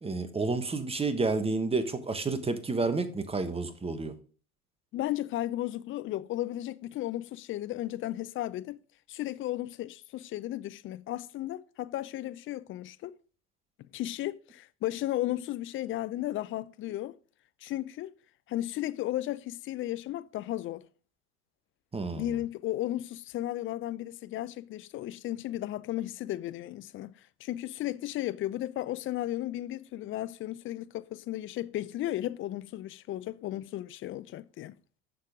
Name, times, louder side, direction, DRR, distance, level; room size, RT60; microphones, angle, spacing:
voice 1, 0.0-4.1 21.9-22.3, right 3 dB, 10° right, 1.3 m, -30 dB
voice 2, 4.9-8.8 9.1-13.1 13.9-17.1 17.6-18.1 18.5-20.8 22.2-27.1 27.4-34.7, left 14 dB, 25° left, 0.5 m, -34 dB
11.5 x 6.7 x 3.7 m
figure-of-eight pair, 80°, 46 cm